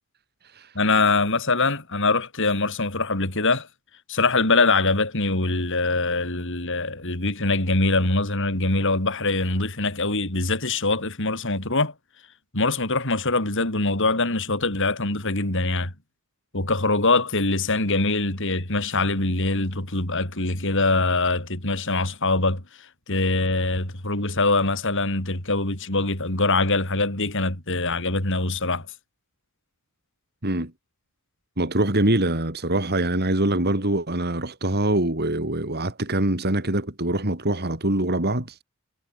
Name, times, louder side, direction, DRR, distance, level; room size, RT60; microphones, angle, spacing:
voice 1, 0.8-3.7 4.1-11.9 12.5-15.9 16.5-22.6 23.1-28.9, left 3 dB, 60° left, 5.4 m, -23 dB
voice 2, 31.6-38.6, right 1 dB, 45° right, 4.0 m, -24 dB
head